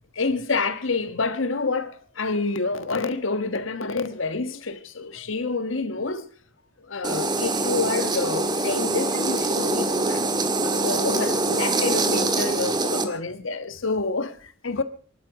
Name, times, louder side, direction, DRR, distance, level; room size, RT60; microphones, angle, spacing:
voice 1, 0.2-6.2 6.8-10.3 10.6-14.8, left 3 dB, 75° left, 1.4 m, -28 dB
sound 1, 7.0-13.0, right 2 dB, 20° right, 1.7 m, -24 dB
24.5 x 12.0 x 4.9 m
head